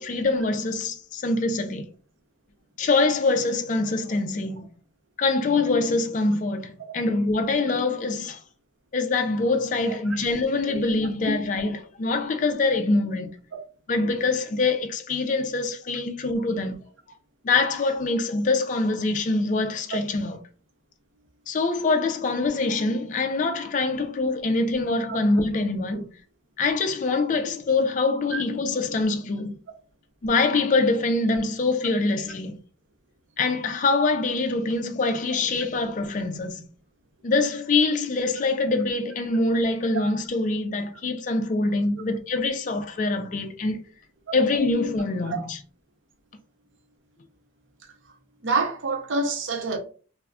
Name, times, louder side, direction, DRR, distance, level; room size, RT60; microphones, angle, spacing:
voice 1, 0.0-1.8 2.8-4.7 5.2-8.4 8.9-13.4 13.9-16.8 17.4-20.4 21.5-26.1 26.6-29.5 30.2-32.6 33.4-36.7 37.2-43.8 44.3-45.6, left 3 dB, 40° left, 0.3 m, -24 dB
voice 2, 9.9-10.2 10.7-10.8 16.2-16.3 19.9-20.0 25.1-25.2 28.3-28.4 39.9-40.1 44.3-44.4 45.3-45.4 48.4-49.8, right 4 dB, 75° right, 0.6 m, -27 dB
2.3 x 2.1 x 3.5 m
head